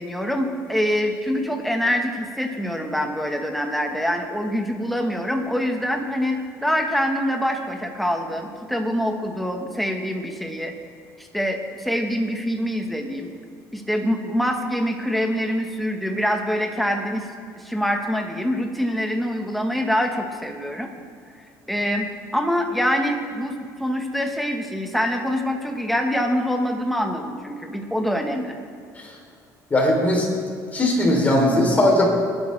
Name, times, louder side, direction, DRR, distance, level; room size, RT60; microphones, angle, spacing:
voice 1, 0.0-10.7 11.2-13.3 13.7-17.3 17.6-20.9 21.7-28.6, equal, ahead, 3 dB, 1.3 m, -25 dB
voice 2, 29.7-30.3 30.7-32.1, left 1 dB, 25° left, -1 dB, 3.1 m, -19 dB
21.0 x 11.5 x 3.3 m, 2.4 s
cardioid pair, 130°, 7 cm